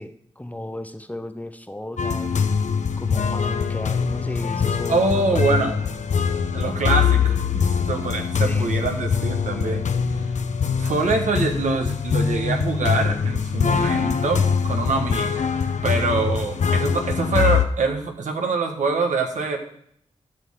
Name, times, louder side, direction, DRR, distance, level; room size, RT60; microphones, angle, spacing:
voice 1, 0.0-2.5 3.0-5.8 8.3-8.9, left 1 dB, 10° left, 9 dB, 0.7 m, -35 dB
sound 1, 2.0-17.6, left 6 dB, 70° left, 0.7 m, -23 dB
voice 2, 4.9-5.7 6.5-9.8 10.8-15.4 15.8-19.6, right 3 dB, 80° right, 3 dB, 1.4 m, -24 dB
12.5 x 6.6 x 3.6 m, 0.68 s
cardioid pair, 55°, 13 cm